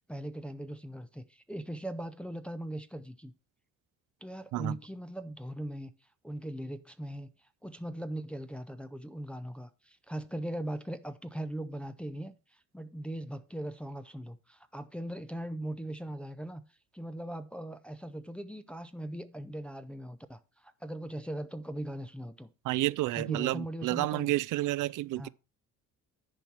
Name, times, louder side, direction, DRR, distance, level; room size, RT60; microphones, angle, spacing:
voice 1, 0.1-3.3 4.2-5.9 6.2-16.6 16.9-22.5 23.1-24.3 25.1-25.3, right 1 dB, 5° left, 0.6 m, -40 dB
voice 2, 22.6-25.3, right 17 dB, 70° right, 0.5 m, -30 dB
10.5 x 4.5 x 5.9 m
cardioid pair, 120°, 32 cm